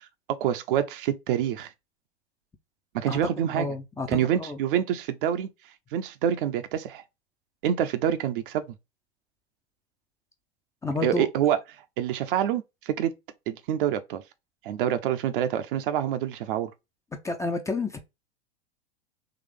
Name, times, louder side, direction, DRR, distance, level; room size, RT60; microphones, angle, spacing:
voice 1, 0.0-1.7 2.9-3.7 4.1-5.5 5.9-7.0 7.6-8.6 11.0-13.1 13.5-14.2 14.6-16.7, right 10 dB, 50° right, 0.7 m, -27 dB
voice 2, 3.5-4.2 4.5-4.6 10.8-11.3 17.2-18.0, left 3 dB, 10° left, 0.5 m, -29 dB
3.9 x 3.2 x 3.1 m
figure-of-eight pair, 90°, 34 cm